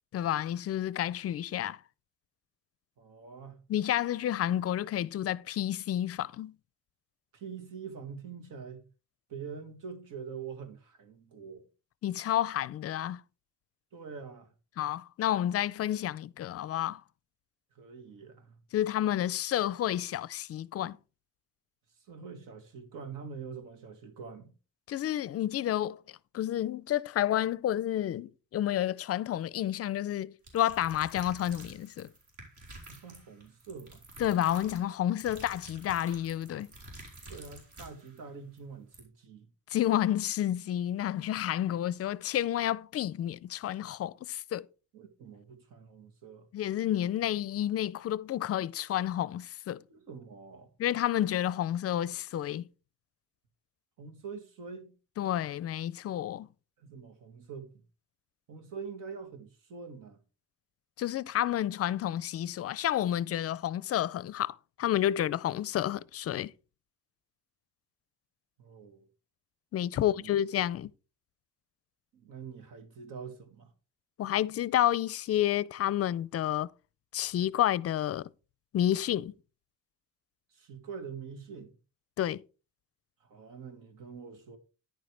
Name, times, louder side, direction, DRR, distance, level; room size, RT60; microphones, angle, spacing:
voice 1, 0.1-1.8 3.7-6.6 12.0-13.2 14.8-17.0 18.7-21.0 24.9-32.1 34.2-36.7 39.7-44.7 46.5-49.8 50.8-52.7 55.2-56.5 61.0-66.5 69.7-70.9 74.2-76.7 77.1-78.3 78.7-79.3 82.2-82.4, left 12 dB, 50° left, 0.4 m, -30 dB
voice 2, 3.0-3.6 7.3-8.8 9.3-11.6 13.9-14.5 17.7-18.6 22.1-24.5 32.9-34.1 37.3-39.5 44.9-46.5 49.9-50.7 54.0-54.9 56.8-57.7 58.5-60.2 68.6-69.1 69.9-70.3 72.1-73.7 80.5-81.8 83.2-84.6, right 6 dB, 80° right, 1.9 m, -45 dB
sound 1, 30.4-38.2 38.6-38.7 38.9-39.0, right 2 dB, 65° right, 4.6 m, -50 dB
10.5 x 9.4 x 3.3 m
cardioid pair, 150°, 32 cm